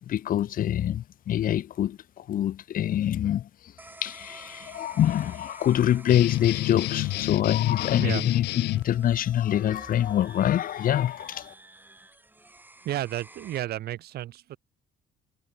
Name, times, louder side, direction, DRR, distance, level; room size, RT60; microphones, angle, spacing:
voice 1, 0.1-3.5 4.0-8.5 8.7-11.5, left 11 dB, 55° left, 1.4 m, -25 dB
sound 1, 3.8-13.6, right 2 dB, 10° right, 3.5 m, -50 dB
sound 2, 6.1-8.8, left 17 dB, 80° left, 1.6 m, -29 dB
voice 2, 8.0-8.3 12.8-14.6, right 13 dB, 70° right, 4.2 m, -32 dB
cardioid pair, 110°, 17 cm